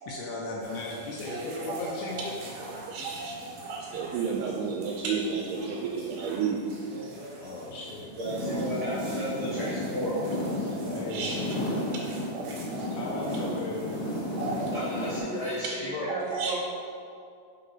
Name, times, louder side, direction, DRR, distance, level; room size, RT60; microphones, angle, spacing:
voice 1, 0.1-2.3 7.4-8.2 9.6-9.7 10.9-11.6 13.0-13.9 15.8-16.1, left 3 dB, 80° left, -3 dB, 2.1 m, -36 dB
sound 1, 0.6-15.6, right 1 dB, 65° right, 1.5 m, -46 dB
voice 2, 1.3-2.3 2.8-6.7 8.8-9.0 9.3-11.5 11.9-13.0 14.4-15.2 15.6-15.8 16.1-16.5, right 5 dB, 80° right, -1 dB, 2.1 m, -34 dB
voice 3, 8.1-10.2 14.7-16.5, right 1 dB, 45° right, -11 dB, 1.5 m, -34 dB
sound 2, 8.2-15.2, left 1 dB, 40° left, 0.8 m, -33 dB
4.7 x 3.9 x 5.5 m, 2.4 s
omnidirectional pair, 3.7 m